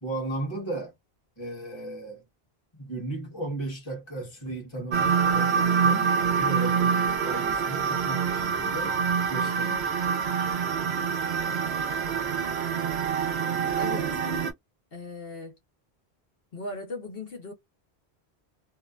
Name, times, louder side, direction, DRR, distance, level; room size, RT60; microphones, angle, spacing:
voice 1, 0.0-0.9 1.4-2.2 2.8-9.0 9.3-9.8, right 2 dB, 25° left, 1.3 m, -35 dB
sound 1, 4.9-14.5, right 6 dB, 85° right, 1.0 m, -26 dB
voice 2, 13.8-14.2 14.9-15.6 16.5-17.5, left 2 dB, 65° left, 1.1 m, -37 dB
2.8 x 2.2 x 2.4 m
omnidirectional pair, 1.1 m